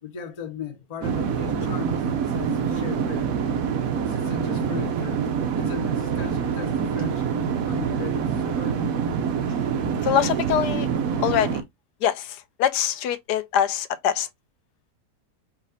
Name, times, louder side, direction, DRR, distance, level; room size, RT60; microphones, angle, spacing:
voice 1, 0.0-3.4 4.0-5.2 5.5-7.3 7.6-8.9, left 7 dB, 35° left, 0.6 m, -37 dB
sound 1, 1.0-11.6, right 7 dB, 65° right, 1.0 m, -26 dB
voice 2, 10.0-10.9 11.2-11.6 12.0-14.3, left 10 dB, 80° left, 1.1 m, -24 dB
4.1 x 2.5 x 3.9 m
omnidirectional pair, 1.8 m